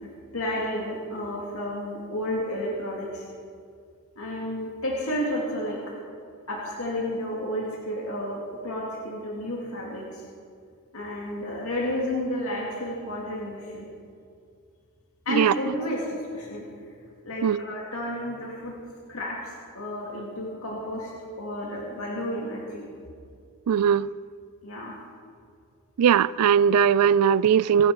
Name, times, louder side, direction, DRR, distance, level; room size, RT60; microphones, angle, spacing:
voice 1, 0.0-3.2 4.2-5.8 6.5-10.2 10.9-13.9 15.3-16.6 17.2-18.7 19.1-21.1 21.4-22.8 24.6-24.9, left 1 dB, 70° left, 2.4 m, -31 dB
voice 2, 23.7-24.1 26.0-27.9, right 8 dB, 85° right, 0.3 m, -19 dB
24.5 x 9.2 x 4.9 m
head